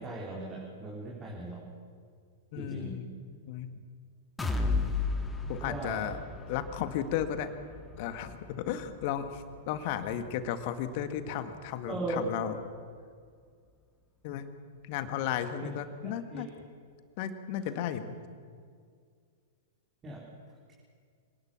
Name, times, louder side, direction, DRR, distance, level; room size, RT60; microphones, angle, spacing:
voice 1, 0.0-1.6 2.6-3.0 4.6-4.9 5.6-6.1 11.9-12.3 15.6-15.8 16.0-16.4 20.0-20.2, right 2 dB, 20° right, -3 dB, 4.1 m, -38 dB
voice 2, 2.5-3.1 3.4-3.7 5.5-6.2 6.5-7.5 8.0-12.6 14.2-14.5 14.8-16.5 17.2-18.1, left 9 dB, 45° left, 10 dB, 1.8 m, -34 dB
sound 1, 4.4-12.2 12.6-12.7 13.1-13.2, left 3 dB, 10° left, 2.1 m, -36 dB
26.0 x 19.0 x 7.1 m, 2.1 s
figure-of-eight pair, 100°, 0 cm